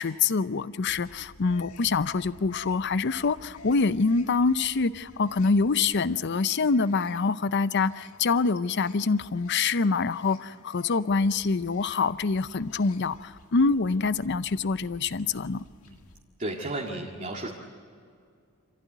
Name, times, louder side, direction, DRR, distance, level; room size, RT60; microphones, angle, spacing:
voice 1, 0.0-15.6, left 4 dB, 55° left, 15 dB, 0.6 m, -25 dB
sound 1, 0.9-16.2, left 3 dB, 80° left, 1.7 m, -52 dB
voice 2, 16.4-17.5, right 2 dB, 35° right, -1 dB, 2.0 m, -33 dB
27.5 x 15.5 x 9.3 m, 2.3 s
head